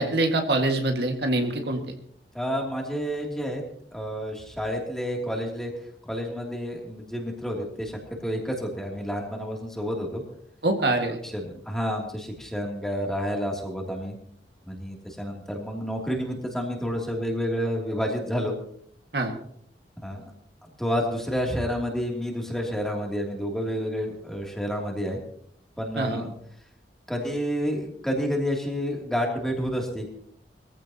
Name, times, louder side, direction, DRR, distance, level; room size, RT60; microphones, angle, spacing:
voice 1, 0.0-1.9 10.6-11.2 19.1-19.3 26.0-26.2, right 2 dB, 65° right, 3 dB, 1.9 m, -24 dB
voice 2, 2.3-3.6 3.9-5.7 6.1-10.2 11.2-14.1 14.7-18.6 20.0-20.2 20.6-25.2 25.8-26.3 27.1-30.1, equal, 5° left, -1 dB, 2.8 m, -29 dB
22.0 x 15.0 x 2.9 m, 0.67 s
head